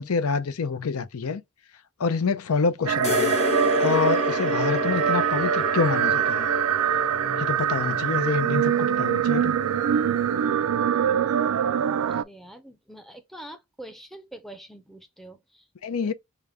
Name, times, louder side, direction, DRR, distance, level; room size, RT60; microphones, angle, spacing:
voice 1, 0.0-1.4 2.0-3.4 3.8-6.5 7.4-9.5 15.8-16.1, left 5 dB, 70° left, 0.5 m, -27 dB
sound 1, 2.9-12.2, right 8 dB, 80° right, 0.4 m, -24 dB
sound 2, 3.0-10.6, left 5 dB, 30° left, 1.1 m, -31 dB
voice 2, 12.1-15.7 16.0-16.1, right 1 dB, ahead, 0.6 m, -44 dB
5.0 x 2.2 x 3.5 m
head